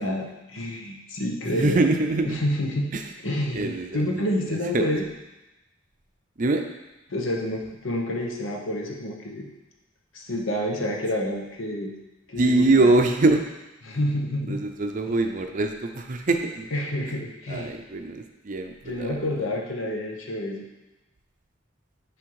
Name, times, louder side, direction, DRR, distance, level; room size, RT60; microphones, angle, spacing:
voice 1, 0.0-1.8 2.2-2.9 3.2-5.1 7.1-9.5 10.1-11.9 12.3-13.0 13.8-14.6 16.7-17.7 18.8-20.7, left 1 dB, 80° left, 0 dB, 1.0 m, -28 dB
voice 2, 1.4-2.4 2.9-3.1 3.5-4.8 6.4-6.6 11.3-11.4 12.4-13.4 14.5-16.7 17.5-19.2, right 2 dB, 40° right, 5 dB, 0.5 m, -24 dB
9.9 x 3.5 x 4.6 m, 1.0 s
head